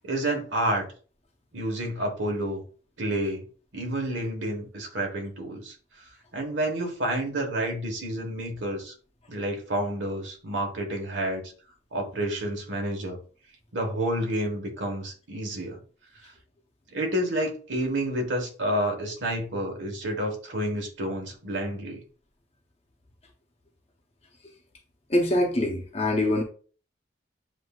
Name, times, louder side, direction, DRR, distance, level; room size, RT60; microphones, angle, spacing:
voice 1, 0.0-0.9 1.5-2.6 3.0-3.4 3.7-5.7 6.3-8.9 9.3-11.4 11.9-13.2 13.7-15.8 16.9-22.0, right 1 dB, 80° right, 2 dB, 1.3 m, -29 dB
voice 2, 25.1-26.4, left 1 dB, 30° left, 1 dB, 0.8 m, -24 dB
7.8 x 2.7 x 2.4 m, 0.39 s
head